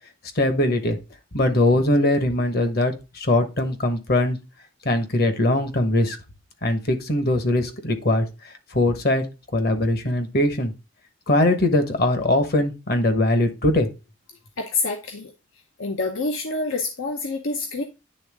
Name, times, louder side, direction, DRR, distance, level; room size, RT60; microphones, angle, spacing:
voice 1, 0.4-1.0 1.3-4.4 4.8-6.2 6.6-9.3 9.5-10.7 11.3-13.9, left 1 dB, 50° left, 1.2 m, -21 dB
voice 2, 14.6-15.3 15.8-17.8, left 3 dB, 85° left, 0.8 m, -27 dB
9.5 x 3.6 x 3.5 m
head